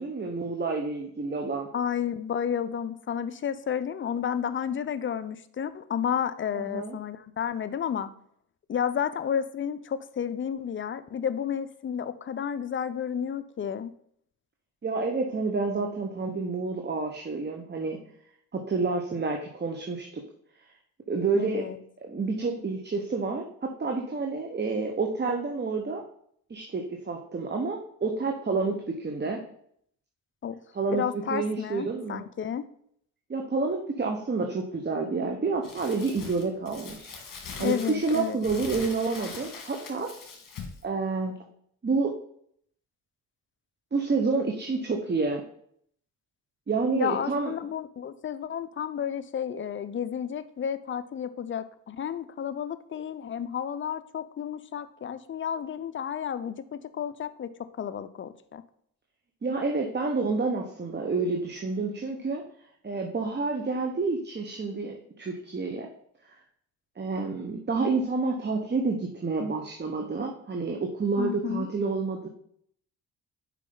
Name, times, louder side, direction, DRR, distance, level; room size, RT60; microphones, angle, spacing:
voice 1, 0.0-1.7 6.5-7.0 14.8-18.0 18.5-20.2 21.1-21.7 22.0-26.0 26.5-29.4 30.7-31.0 31.3-32.2 33.3-37.1 37.6-40.1 40.8-41.3 41.8-42.1 43.9-45.4 46.7-47.5 59.4-62.4 62.8-65.9 66.3-66.4 67.0-72.3, right 4 dB, 25° right, 2 dB, 1.0 m, -29 dB
voice 2, 1.7-8.1 8.7-13.9 21.3-21.8 30.4-30.6 30.9-32.7 37.6-38.4 47.0-57.5 57.8-58.6 71.2-71.7, left 8 dB, 30° left, 12 dB, 0.6 m, -31 dB
Crumpling crinkling, 35.6-40.8, left 5 dB, 55° left, 1.8 m, -42 dB
6.6 x 5.1 x 3.8 m, 0.66 s
supercardioid pair, 70°, 39 cm